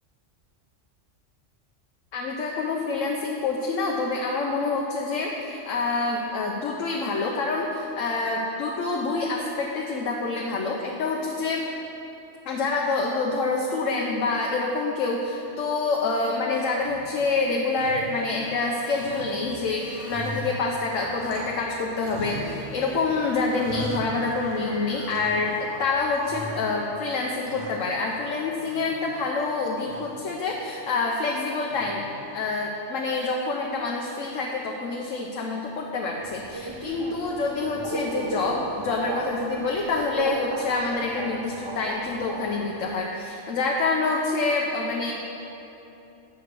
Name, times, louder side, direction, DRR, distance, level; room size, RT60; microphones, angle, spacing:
voice 1, 2.1-11.7 12.4-32.0 32.3-45.1, left 3 dB, 85° left, -1 dB, 1.1 m, -27 dB
sound 1, 16.8-17.4 17.7-18.7 18.9-21.7 22.0-23.0 23.3-24.7 25.1-25.8 26.2-26.9 27.2-28.3 28.6-29.3 29.8-30.3 31.7-32.2, right 2 dB, 65° right, 1.5 m, -40 dB
sound 2, 18.8-19.5 19.8-20.4 21.0-25.8, left 1 dB, 5° right, 1.0 m, -43 dB
Subway metro underground, 36.2-43.0, right 2 dB, 30° right, 0.5 m, -35 dB
8.6 x 4.7 x 6.6 m, 2.9 s
omnidirectional pair, 1.3 m